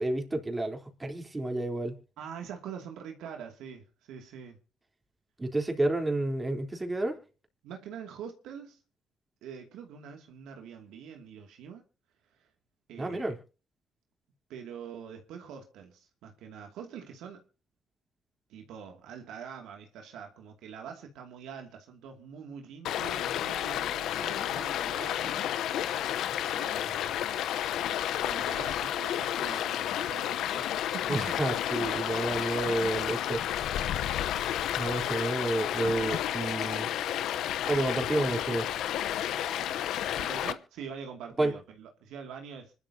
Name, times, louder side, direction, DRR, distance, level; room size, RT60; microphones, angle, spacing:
voice 1, 0.0-2.0 5.4-7.2 13.0-13.4 31.1-33.4 34.7-36.9 37.6-38.7 41.4-41.5, right 2 dB, 20° right, 3.8 m, -30 dB
voice 2, 2.2-4.6 7.6-8.8 9.4-11.8 12.4-12.5 12.9-13.3 14.5-17.5 18.5-25.5 26.5-27.3 28.2-31.4 40.2-42.7, right 7 dB, 85° right, 2.6 m, -44 dB
Stream, 22.8-40.5, left 11 dB, 80° left, 0.9 m, -31 dB
26.0 x 12.5 x 2.9 m
cardioid pair, 85°, 0 cm